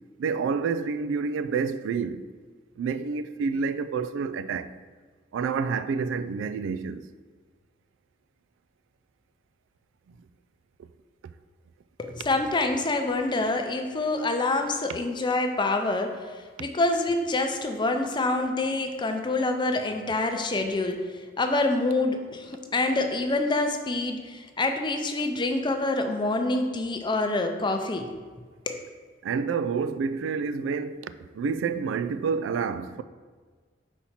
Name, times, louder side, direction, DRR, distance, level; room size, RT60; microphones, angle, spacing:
voice 1, 0.2-2.3 2.8-4.7 5.3-7.1 29.2-33.0, right 5 dB, 90° right, 0.3 m, -28 dB
voice 2, 12.0-16.2 16.6-21.0 21.4-28.1 28.7-28.8, left 2 dB, 25° left, 0.5 m, -26 dB
4.5 x 4.2 x 5.6 m
head